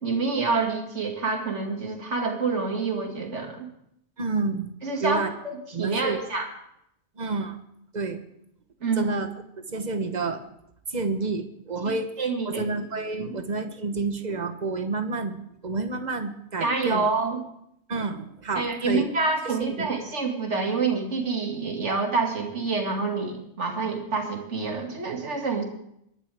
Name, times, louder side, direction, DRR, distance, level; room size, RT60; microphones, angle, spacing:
voice 1, 0.0-3.7 4.8-6.5 8.8-9.1 11.8-12.7 13.2-13.4 16.6-17.4 18.6-25.6, right 4 dB, 85° right, 2 dB, 2.5 m, -27 dB
voice 2, 4.2-4.7 5.0-5.3 5.7-6.2 7.2-7.6 7.9-8.2 9.0-9.3 9.7-10.4 10.9-12.1 12.5-17.1 17.9-19.0 19.8-20.0, right 3 dB, 40° right, 8 dB, 1.2 m, -29 dB
22.5 x 12.0 x 3.5 m, 0.74 s
omnidirectional pair, 1.2 m